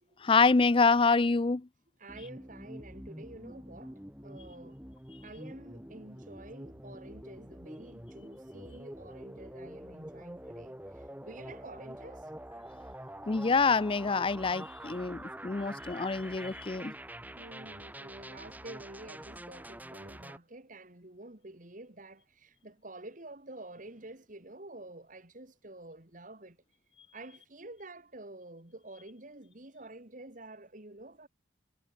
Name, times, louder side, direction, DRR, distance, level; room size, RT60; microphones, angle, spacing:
voice 1, 0.2-1.7 13.3-16.9, left 4 dB, 30° left, 0.5 m, -26 dB
voice 2, 2.0-4.8 5.2-12.3 17.3-26.6 27.1-31.3, right 2 dB, 45° right, 2.5 m, -49 dB
sound 1, 2.1-20.4, right 1 dB, 10° right, 4.9 m, -46 dB
head